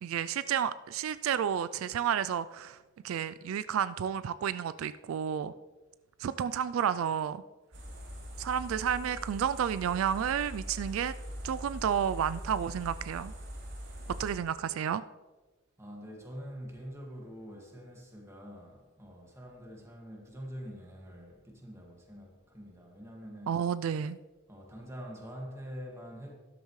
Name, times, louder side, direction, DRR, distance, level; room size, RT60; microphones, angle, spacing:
voice 1, 0.0-2.8 3.0-5.5 6.2-7.4 8.4-11.1 11.4-13.3 14.2-15.0 23.5-24.2, right 8 dB, 80° right, 0.3 m, -31 dB
sound 1, 7.7-14.4, equal, 60° right, 3.0 m, -42 dB
voice 2, 15.8-23.6 24.5-26.3, equal, 15° right, 1.9 m, -45 dB
13.0 x 11.5 x 3.2 m
head